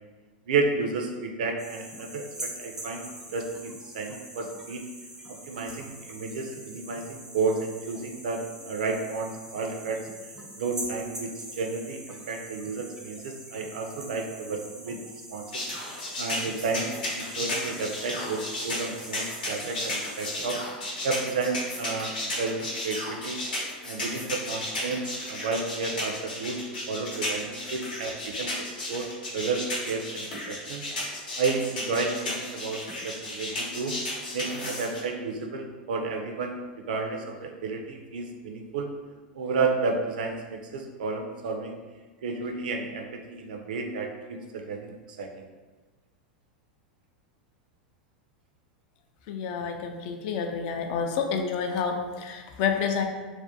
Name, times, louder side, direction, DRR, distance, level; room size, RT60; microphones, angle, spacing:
voice 1, 0.5-3.0 3.3-4.8 5.3-10.0 10.6-15.0 15.3-15.6 16.2-20.6 21.0-23.4 23.9-25.0 25.3-26.6 26.9-30.9 31.4-33.9 34.3-36.6 36.9-38.9 39.3-41.7 42.2-44.9 45.2-45.3, right 4 dB, 70° right, 3 dB, 0.3 m, -31 dB
sound 1, 1.6-20.5, right 1 dB, 10° right, 0.5 m, -43 dB
sound 2, 15.5-35.0, left 1 dB, 80° left, 0.8 m, -33 dB
voice 2, 49.3-53.0, left 6 dB, 55° left, 4 dB, 0.3 m, -29 dB
2.4 x 2.1 x 2.6 m, 1.3 s
hypercardioid pair, 95°, 5 cm